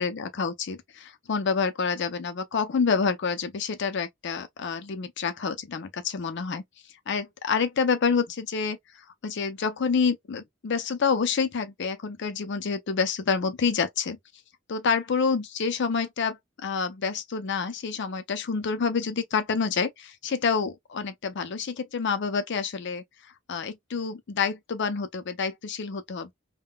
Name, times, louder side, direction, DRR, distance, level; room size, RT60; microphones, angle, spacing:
voice 1, 0.0-6.6 7.1-8.8 9.2-14.2 14.7-23.0 23.5-26.3, left 5 dB, 60° left, 0.5 m, -28 dB
3.6 x 2.2 x 2.2 m
head